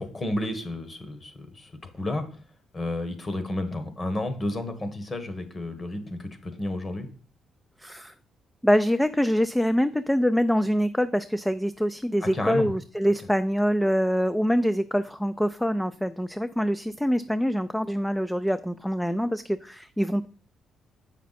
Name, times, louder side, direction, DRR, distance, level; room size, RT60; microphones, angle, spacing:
voice 1, 0.0-2.2 2.7-7.1 12.2-12.7, left 1 dB, 30° left, 9 dB, 1.4 m, -31 dB
voice 2, 7.8-8.1 8.6-20.3, equal, 5° left, 11 dB, 0.3 m, -25 dB
7.3 x 5.7 x 4.2 m, 0.42 s
cardioid pair, 90°, 0 cm